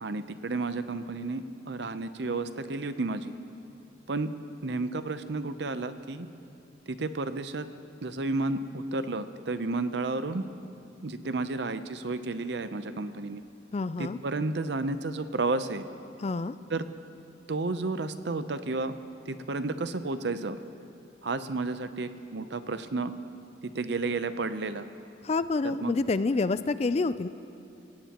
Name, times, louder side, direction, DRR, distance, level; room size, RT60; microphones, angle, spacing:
voice 1, 0.0-3.3 4.1-4.3 4.6-6.3 6.9-7.7 8.0-10.4 11.0-13.4 14.0-15.8 16.7-16.8 17.5-18.9 19.3-20.6 21.2-23.1 23.7-24.9 25.6-25.9, right 3 dB, 65° right, 11 dB, 0.7 m, -32 dB
voice 2, 13.7-14.2 16.2-16.6 25.2-27.3, left 3 dB, 35° left, 14 dB, 0.4 m, -28 dB
26.5 x 17.5 x 3.0 m, 2.7 s
head